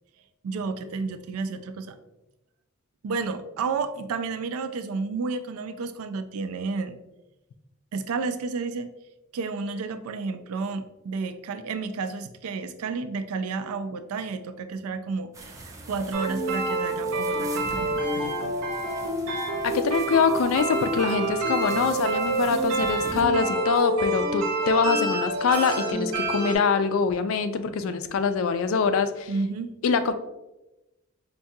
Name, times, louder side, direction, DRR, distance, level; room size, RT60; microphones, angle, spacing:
voice 1, 0.4-2.0 3.0-7.0 7.9-8.9 9.3-18.5 29.3-29.7, right 4 dB, 90° right, 11 dB, 0.3 m, -31 dB
sound 1, 15.3-23.2, right 2 dB, 15° right, 0.4 m, -43 dB
sound 2, 16.1-26.5, right 2 dB, 75° right, 0.7 m, -27 dB
voice 2, 19.6-29.3 29.8-30.1, left 5 dB, 65° left, 10 dB, 0.3 m, -24 dB
4.6 x 2.2 x 2.7 m, 0.99 s
head